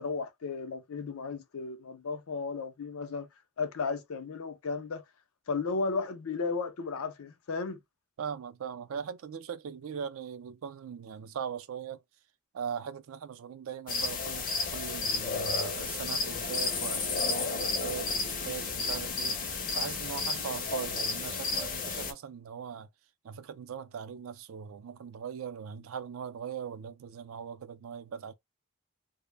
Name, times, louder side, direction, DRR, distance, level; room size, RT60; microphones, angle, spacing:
voice 1, 0.0-3.3 3.6-5.0 5.5-7.8, left 4 dB, 90° left, 0.5 m, -34 dB
voice 2, 8.2-12.0 12.5-19.4 19.7-22.9 23.2-28.3, right 7 dB, 80° right, 0.4 m, -40 dB
sound 1, 13.9-22.1, left 4 dB, 40° left, 0.5 m, -32 dB
2.1 x 2.0 x 3.2 m
head